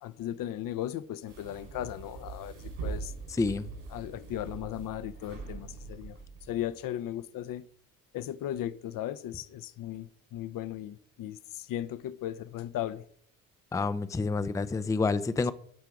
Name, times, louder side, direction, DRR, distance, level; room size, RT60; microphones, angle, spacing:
voice 1, 0.0-3.1 3.9-6.2 6.5-7.7 8.1-13.0, left 12 dB, 50° left, 0.7 m, -37 dB
sound 1, 1.3-6.8, right 5 dB, 80° right, 4.7 m, -42 dB
voice 2, 13.7-15.5, left 4 dB, 10° left, 0.5 m, -28 dB
12.5 x 4.6 x 5.0 m
hypercardioid pair, 55°, 42 cm